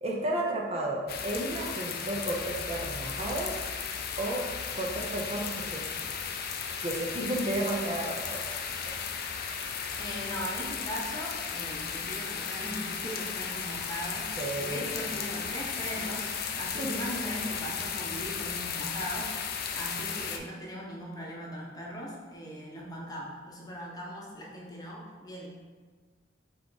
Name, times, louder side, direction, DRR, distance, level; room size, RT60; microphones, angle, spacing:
voice 1, 0.0-3.5 4.2-4.5 4.7-5.8 6.8-8.4 14.4-15.0 16.8-17.0, right 1 dB, 35° right, -2 dB, 0.5 m, -32 dB
sound 1, 1.1-20.4, left 6 dB, 55° left, 0.4 m, -35 dB
voice 2, 10.0-25.5, equal, 20° left, -4 dB, 0.8 m, -39 dB
3.6 x 3.5 x 3.9 m, 1.4 s
head